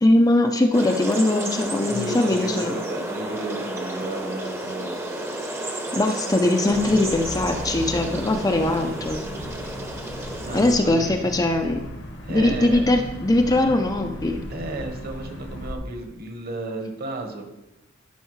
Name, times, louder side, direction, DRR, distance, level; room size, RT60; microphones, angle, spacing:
voice 1, 0.0-2.7 5.9-9.2 10.5-11.8 12.3-14.4, left 2 dB, 20° left, 5 dB, 0.4 m, -21 dB
sound 1, 0.7-10.8, right 1 dB, 15° right, 0.8 m, -32 dB
voice 2, 1.9-5.0 10.4-11.3 12.2-12.8 13.6-14.0 14.5-17.4, right 2 dB, 50° right, 4 dB, 1.2 m, -33 dB
sound 2, 6.7-15.8, equal, 60° left, 1.1 m, -36 dB
11.5 x 5.5 x 3.2 m, 0.97 s
head